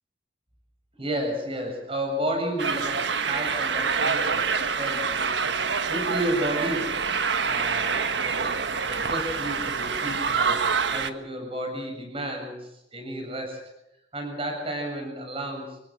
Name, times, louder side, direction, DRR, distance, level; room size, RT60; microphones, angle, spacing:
voice 1, 1.0-7.1 7.5-13.6 14.1-15.8, right 1 dB, 30° right, 3 dB, 7.3 m, -32 dB
sound 1, 2.6-11.1, right 5 dB, 75° right, 1.4 m, -26 dB
27.0 x 16.0 x 7.7 m, 0.85 s
head